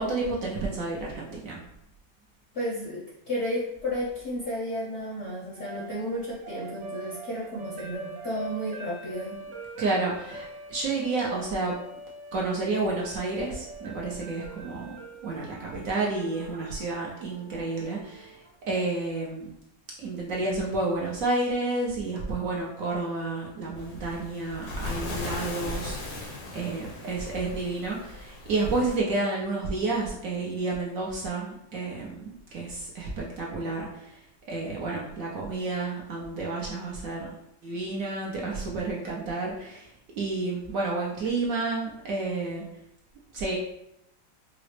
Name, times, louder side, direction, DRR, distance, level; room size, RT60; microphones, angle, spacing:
voice 1, 0.0-1.6 9.8-11.8 12.3-14.9 15.2-19.5 20.0-37.3 37.6-42.6 43.3-43.6, right 3 dB, 65° right, -3 dB, 0.9 m, -30 dB
voice 2, 2.5-9.4, equal, 60° left, -5 dB, 0.7 m, -32 dB
sound 1, 4.5-18.6, right 2 dB, 90° right, 0.6 m, -44 dB
Waves surf, 23.8-29.0, left 2 dB, 85° left, 1.5 m, -37 dB
4.8 x 2.0 x 3.2 m, 0.82 s
omnidirectional pair, 1.9 m